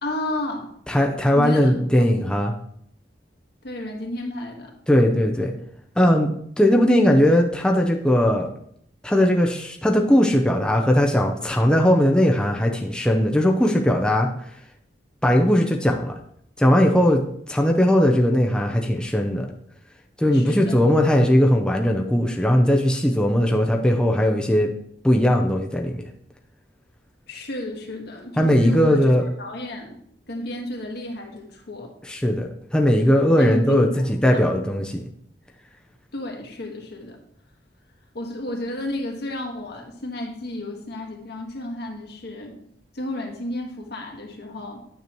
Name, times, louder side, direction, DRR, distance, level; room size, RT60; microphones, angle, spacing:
voice 1, 0.0-0.7 1.3-2.1 3.6-4.7 20.3-20.8 27.3-30.0 30.3-31.9 33.4-34.6 36.1-37.2 38.1-42.6 42.9-44.8, left 1 dB, 65° left, 1 dB, 1.5 m, -32 dB
voice 2, 0.9-2.5 4.9-5.5 6.0-8.5 9.0-14.3 15.2-16.2 16.6-17.2 17.5-19.5 20.2-24.7 25.0-26.1 28.4-29.2 32.1-35.0, equal, 5° left, 1 dB, 0.6 m, -19 dB
9.4 x 6.7 x 3.0 m, 0.67 s
head